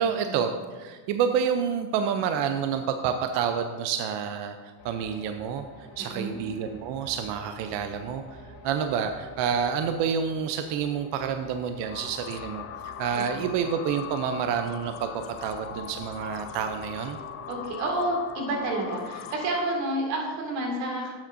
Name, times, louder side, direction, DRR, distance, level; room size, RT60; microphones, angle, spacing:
voice 1, 0.0-8.4 8.6-17.2, right 7 dB, 55° right, 7 dB, 0.7 m, -29 dB
sound 1, 4.8-17.6, left 1 dB, 55° left, 1.7 m, -48 dB
voice 2, 6.0-6.4 13.4-13.5 17.5-21.1, right 1 dB, 90° right, 0 dB, 2.2 m, -29 dB
sound 2, 11.8-19.8, left 9 dB, 30° left, 0.3 m, -40 dB
11.0 x 7.3 x 2.6 m, 1.4 s
supercardioid pair, 105°, 50 cm